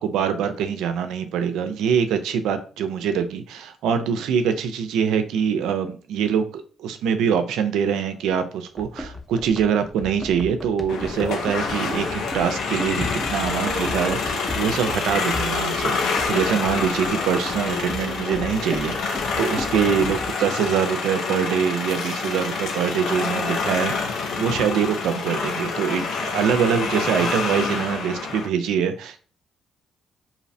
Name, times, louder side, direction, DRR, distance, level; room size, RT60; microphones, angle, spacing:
voice 1, 0.0-15.9 16.3-23.9 24.4-29.2, right 7 dB, 85° right, 9 dB, 0.3 m, -24 dB
Run, 8.8-20.5, left 2 dB, 10° left, 0.3 m, -36 dB
sound 1, 10.9-28.5, left 4 dB, 75° left, 0.5 m, -27 dB
2.7 x 2.0 x 2.6 m, 0.41 s
cardioid pair, 90°, 0 cm